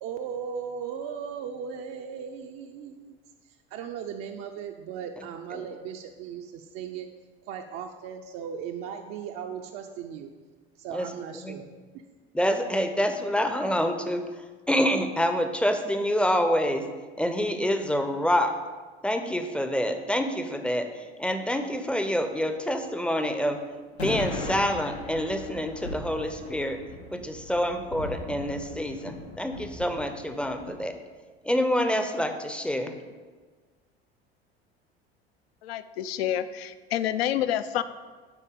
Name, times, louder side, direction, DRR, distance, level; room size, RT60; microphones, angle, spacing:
voice 1, 0.0-7.1 7.4-10.3 10.8-11.7, right 7 dB, 45° right, 4 dB, 0.5 m, -37 dB
voice 2, 12.3-14.2 14.7-16.9 17.2-18.5 19.0-23.6 24.0-26.8 27.1-31.0 31.4-32.9, equal, 5° left, 7 dB, 0.5 m, -27 dB
sound 1, 24.0-30.8, left 2 dB, 90° left, 0.8 m, -38 dB
voice 3, 35.6-37.8, left 11 dB, 70° left, 13 dB, 0.5 m, -28 dB
10.0 x 3.9 x 3.7 m, 1.4 s
figure-of-eight pair, 70°, 32 cm